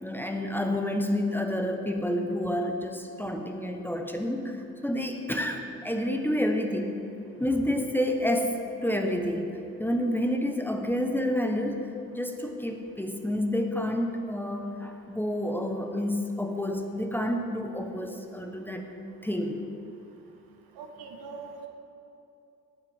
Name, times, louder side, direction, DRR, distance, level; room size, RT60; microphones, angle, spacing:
voice 1, 0.0-7.0 7.4-8.5 8.8-11.9 12.1-18.9 19.2-19.6, left 1 dB, 5° left, 3 dB, 1.2 m, -29 dB
voice 2, 20.8-21.7, right 4 dB, 65° right, 3 dB, 1.5 m, -42 dB
18.0 x 8.8 x 3.7 m, 2.8 s
hypercardioid pair, 55°, 40 cm